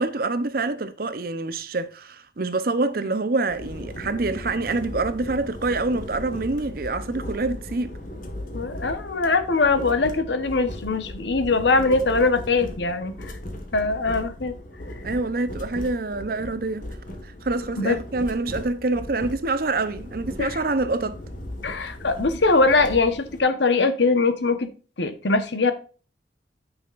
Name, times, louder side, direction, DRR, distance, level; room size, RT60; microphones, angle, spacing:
voice 1, 0.0-7.9 15.0-16.9 17.2-21.2, right 3 dB, 55° right, 0.8 m, -26 dB
sound 1, 3.5-23.4, left 1 dB, 50° left, 1.5 m, -37 dB
voice 2, 8.5-13.3 13.7-14.5 17.8-18.0 20.4-20.6 21.6-24.7 25.0-25.7, left 3 dB, 80° left, 1.1 m, -22 dB
9.4 x 6.3 x 2.5 m
head